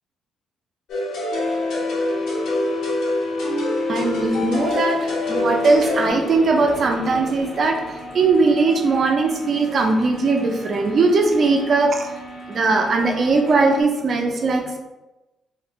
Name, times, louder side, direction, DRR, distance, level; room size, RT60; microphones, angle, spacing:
sound 1, 0.9-6.1, left 1 dB, 80° left, 0.8 m, -26 dB
sound 2, 1.3-13.8, left 2 dB, 50° left, 0.6 m, -31 dB
voice 1, 3.9-12.1 12.5-14.8, right 3 dB, 50° right, 3 dB, 0.5 m, -19 dB
3.1 x 2.4 x 3.0 m, 1.0 s
cardioid pair, 90°, 0 cm